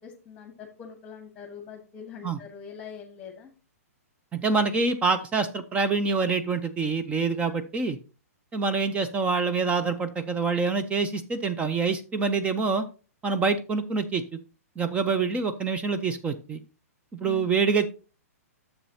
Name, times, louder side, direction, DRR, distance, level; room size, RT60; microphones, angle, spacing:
voice 1, 0.0-3.5 17.2-17.5, left 7 dB, 20° left, 4 dB, 1.4 m, -43 dB
voice 2, 4.3-8.0 8.5-12.9 13.2-14.2 14.8-16.6 17.2-17.9, right 4 dB, 15° right, 9 dB, 0.5 m, -26 dB
10.0 x 7.1 x 2.8 m, 0.34 s
hypercardioid pair, 125°, 8 cm